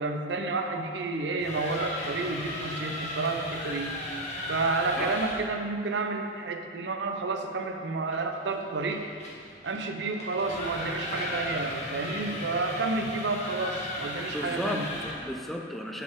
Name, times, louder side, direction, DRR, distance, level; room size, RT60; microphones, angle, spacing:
voice 1, 0.0-4.0 4.5-9.0 9.6-14.9, right 3 dB, 75° right, 5 dB, 0.6 m, -30 dB
sound 1, 1.2-5.5 8.1-15.3, left 1 dB, 40° left, 1.1 m, -36 dB
voice 2, 14.3-16.0, equal, ahead, 1 dB, 0.4 m, -34 dB
8.1 x 4.3 x 3.7 m, 2.2 s
head